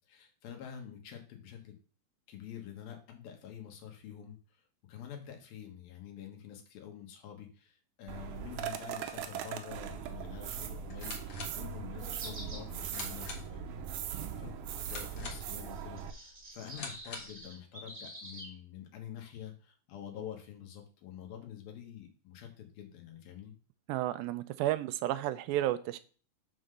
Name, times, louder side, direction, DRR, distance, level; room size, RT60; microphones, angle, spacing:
voice 1, 0.1-1.8 2.3-14.6 14.9-23.5, left 9 dB, 85° left, 3 dB, 3.3 m, -47 dB
sound 1, 8.1-16.1, right 8 dB, 75° right, 2.0 m, -40 dB
sound 2, 10.8-17.5, left 4 dB, 50° left, 2.0 m, -47 dB
sound 3, 12.2-12.7 13.2-13.3 14.1-14.3 15.7-18.5, equal, 30° right, 1.0 m, -48 dB
voice 2, 23.9-26.0, right 14 dB, 90° right, 13 dB, 2.4 m, -32 dB
7.0 x 3.9 x 6.5 m, 0.39 s
omnidirectional pair, 4.1 m